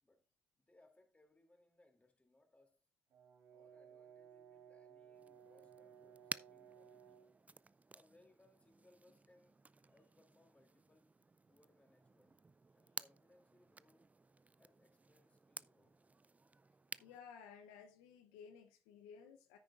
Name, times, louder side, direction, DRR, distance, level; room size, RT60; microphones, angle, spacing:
voice 1, 0.6-2.8 3.5-7.3 7.9-11.2 11.5-12.4 12.7-14.1 14.6-16.0, left 1 dB, 20° left, 2.8 m, -71 dB
Brass instrument, 3.1-7.3, right 8 dB, 75° right, 2.2 m, -60 dB
sound 1, 5.1-17.2, right 3 dB, 25° right, 0.4 m, -54 dB
voice 2, 17.0-19.6, left 6 dB, 90° left, 0.8 m, -56 dB
9.7 x 9.4 x 2.5 m
hypercardioid pair, 50°, 6 cm